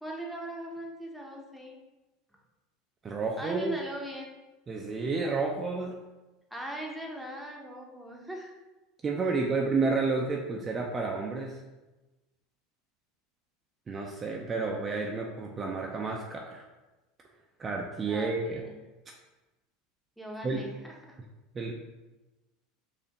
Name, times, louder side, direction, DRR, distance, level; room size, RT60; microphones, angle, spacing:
voice 1, 0.0-1.8 3.4-4.3 6.5-8.5 18.1-18.8 20.2-21.2, right 1 dB, ahead, -1 dB, 0.8 m, -39 dB
voice 2, 3.0-3.8 4.7-6.0 9.0-11.6 13.9-16.6 17.6-18.6 20.4-20.6 21.5-21.7, right 4 dB, 30° right, 0 dB, 0.4 m, -30 dB
4.2 x 2.5 x 2.9 m, 1.1 s
hypercardioid pair, 85°, 0 cm